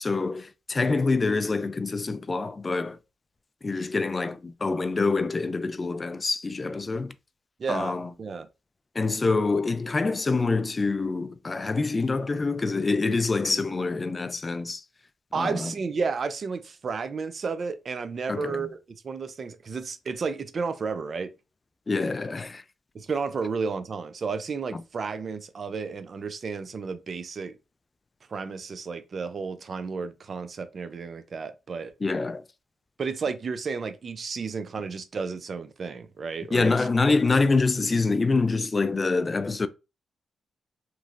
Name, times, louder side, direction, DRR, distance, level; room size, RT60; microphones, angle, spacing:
voice 1, 0.0-3.0 3.6-7.1 7.7-8.1 8.9-14.8 15.3-15.7 18.3-18.7 21.9-22.6 24.7-24.8 32.0-32.4 36.5-39.7, left 3 dB, 35° left, 0.3 m, -26 dB
voice 2, 7.6-8.5 15.3-18.8 19.0-21.3 22.9-27.5 28.3-31.9 33.0-36.9, right 5 dB, 55° right, 0.4 m, -32 dB
3.0 x 2.5 x 2.4 m
cardioid pair, 70°, 0 cm